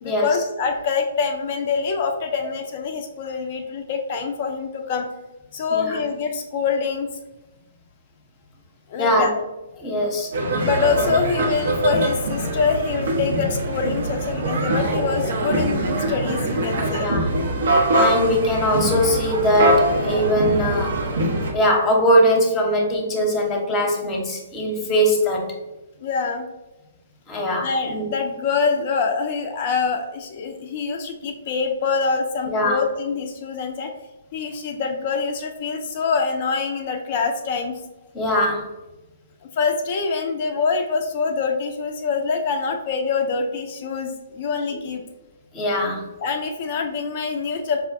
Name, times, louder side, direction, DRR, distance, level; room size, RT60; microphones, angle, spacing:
voice 1, 0.0-5.1 5.5-7.1 8.9-9.3 10.6-17.1 26.0-26.5 27.6-33.9 34.3-37.8 39.5-45.0 46.2-47.9, left 5 dB, 45° left, 3 dB, 0.3 m, -25 dB
voice 2, 5.7-6.0 9.0-9.3 9.8-10.3 17.0-17.3 17.9-21.0 21.5-25.5 27.3-28.1 32.5-32.8 38.1-38.7 44.7-44.8 45.5-46.1, equal, 20° left, 1 dB, 0.8 m, -21 dB
sound 1, 10.3-21.5, right 1 dB, 65° right, 0.7 m, -23 dB
4.7 x 2.1 x 2.5 m, 1.0 s
figure-of-eight pair, 125°, 0 cm